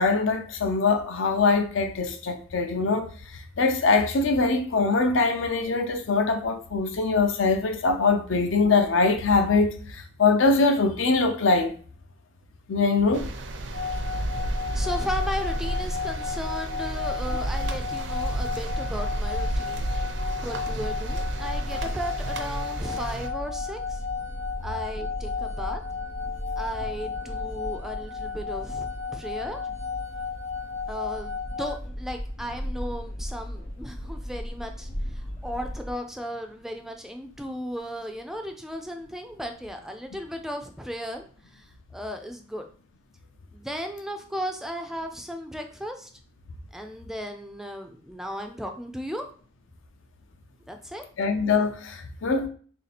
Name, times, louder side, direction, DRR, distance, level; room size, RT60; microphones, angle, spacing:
voice 1, 0.0-3.1 3.6-11.7 12.7-13.2 51.2-52.5, left 3 dB, 75° left, 0.6 m, -23 dB
sound 1, 13.1-23.3, right 1 dB, 60° right, 0.5 m, -31 dB
sound 2, 13.7-31.8, left 6 dB, 90° right, 0.8 m, -34 dB
voice 2, 14.7-19.8 20.4-24.0 24.6-25.8 26.6-29.6 30.9-42.6 43.5-46.1 46.7-49.3 50.7-51.0, equal, ahead, 0.3 m, -35 dB
sound 3, 19.7-35.9, equal, 40° left, 0.9 m, -36 dB
3.2 x 2.8 x 4.1 m
head